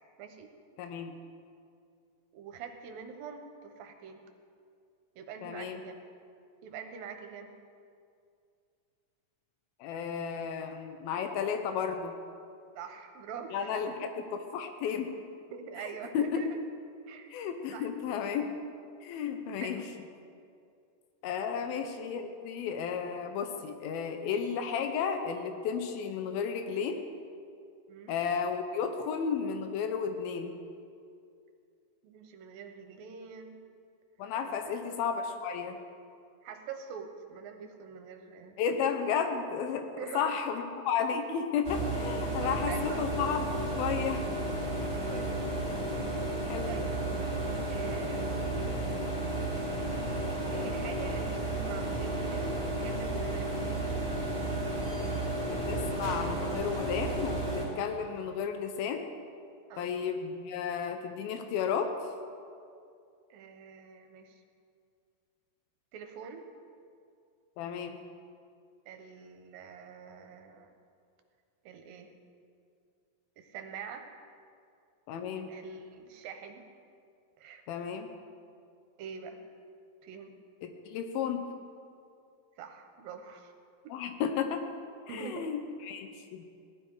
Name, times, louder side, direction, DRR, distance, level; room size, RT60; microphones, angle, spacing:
voice 1, 0.2-0.5 2.3-4.2 5.2-5.9 6.6-7.5 12.7-14.1 15.5-16.6 17.1-17.3 17.7-17.9 18.2-18.4 19.6-19.8 21.5-21.7 27.9-28.2 32.0-33.6 34.7-34.8 36.4-38.6 40.0-40.3 41.1-41.4 42.4-43.1 45.1-45.4 46.7-47.0 47.7-48.4 50.5-53.9 59.7-59.9 63.3-64.4 65.9-66.4 68.9-70.7 71.6-72.1 73.4-74.1 75.5-76.6 77.4-77.6 79.0-79.4 80.0-80.3 82.6-83.5 83.8-84.0 85.1-85.5, right 6 dB, 80° right, 5 dB, 2.8 m, -44 dB
voice 2, 0.8-1.1 5.4-5.8 9.8-12.1 13.5-15.1 15.8-16.5 17.3-18.4 19.0-19.8 21.2-27.0 28.1-30.6 34.2-35.8 38.6-39.9 40.1-44.2 46.4-46.7 55.5-59.1 59.8-61.9 67.6-68.0 75.1-75.5 77.7-78.1 80.6-81.5 83.9-84.7 85.1-86.4, left 7 dB, 90° left, 6 dB, 2.7 m, -33 dB
sound 1, 41.6-57.7, right 1 dB, 10° left, 3.9 m, -33 dB
sound 2, 52.3-58.5, right 3 dB, 55° right, 3.0 m, -51 dB
18.0 x 12.5 x 4.8 m, 2.3 s
omnidirectional pair, 4.1 m